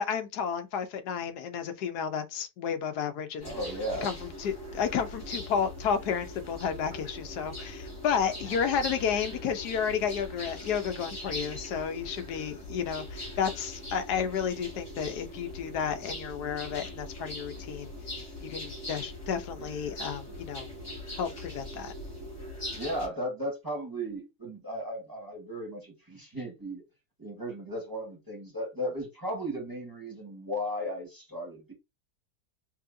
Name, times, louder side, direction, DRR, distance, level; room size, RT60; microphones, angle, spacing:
voice 1, 0.0-3.5 4.0-17.9 18.4-20.7 21.1-21.9, left 7 dB, 75° left, 1.3 m, -32 dB
sound 1, 3.4-23.1, left 1 dB, 45° left, 3.4 m, -41 dB
voice 2, 3.4-4.1 22.7-26.8 27.2-31.7, equal, 15° right, 1.4 m, -35 dB
5.5 x 2.8 x 2.6 m
omnidirectional pair, 1.7 m